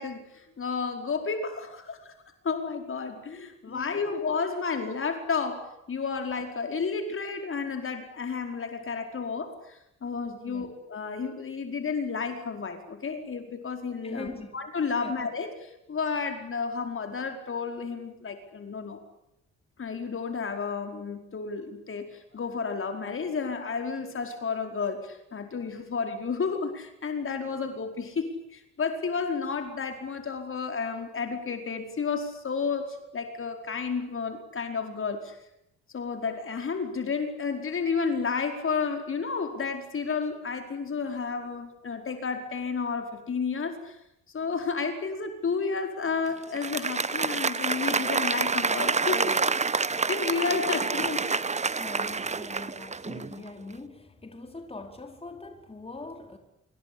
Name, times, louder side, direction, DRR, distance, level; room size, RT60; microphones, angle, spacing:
voice 1, 0.0-2.1 2.4-14.3 14.5-19.0 19.8-35.4 35.9-44.0 44.3-49.4 49.8-51.3, left 5 dB, 45° left, 5 dB, 4.9 m, -31 dB
voice 2, 3.7-4.1 10.4-10.7 14.0-14.5 15.0-15.2 51.0-51.1 51.8-56.4, left 3 dB, 20° left, 5 dB, 4.7 m, -42 dB
Applause, 46.4-53.4, right 4 dB, 25° right, 1.1 m, -28 dB
27.0 x 23.5 x 8.8 m, 0.82 s
cardioid pair, 90°, 30 cm